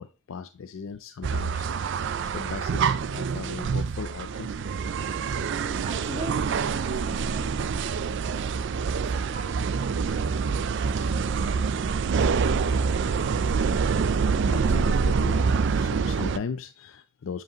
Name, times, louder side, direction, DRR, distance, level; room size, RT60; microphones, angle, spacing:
voice 1, 0.0-4.5 14.4-17.4, left 5 dB, 70° left, 11 dB, 0.4 m, -38 dB
sound 1, 1.2-16.4, right 5 dB, 60° right, 0.4 m, -26 dB
voice 2, 5.5-8.1 8.9-13.3, right 1 dB, 30° right, 1 dB, 1.7 m, -43 dB
7.9 x 4.9 x 2.9 m, 0.34 s
head